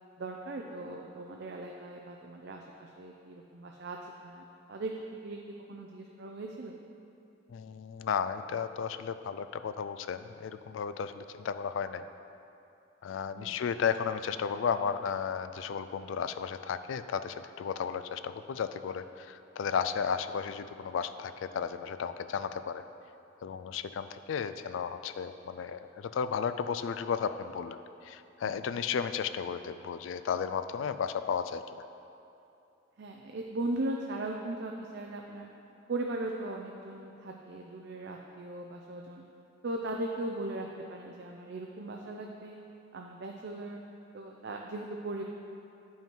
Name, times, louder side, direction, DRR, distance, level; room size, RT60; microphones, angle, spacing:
voice 1, 0.2-6.7 13.4-13.6 28.4-28.7 33.0-35.5 35.9-39.2 39.6-42.6 42.9-43.8 44.1-45.2, right 2 dB, 60° right, 1 dB, 0.5 m, -38 dB
voice 2, 7.5-12.0 13.0-22.8 23.4-31.8, left 6 dB, 75° left, 11 dB, 0.3 m, -34 dB
9.1 x 5.6 x 4.5 m, 2.9 s
head